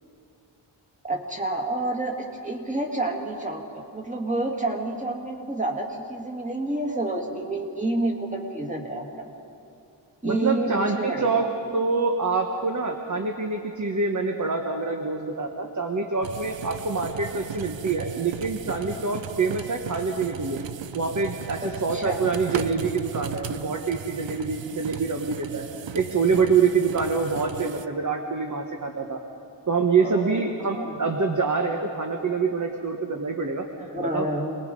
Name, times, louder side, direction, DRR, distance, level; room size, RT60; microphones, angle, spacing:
voice 1, 1.1-9.3 10.2-11.5 21.6-22.3 30.0-30.4 30.7-30.9 33.8-34.6, right 2 dB, 15° right, 2 dB, 2.1 m, -29 dB
voice 2, 10.2-11.5 11.7-20.6 20.9-25.7 25.9-29.2 29.7-33.6 34.1-34.3, right 4 dB, 40° right, 2 dB, 1.3 m, -25 dB
sound 1, 16.2-27.9, right 9 dB, 80° right, 0.7 m, -37 dB
27.5 x 20.0 x 5.4 m, 2.6 s
wide cardioid pair, 150°, 45 cm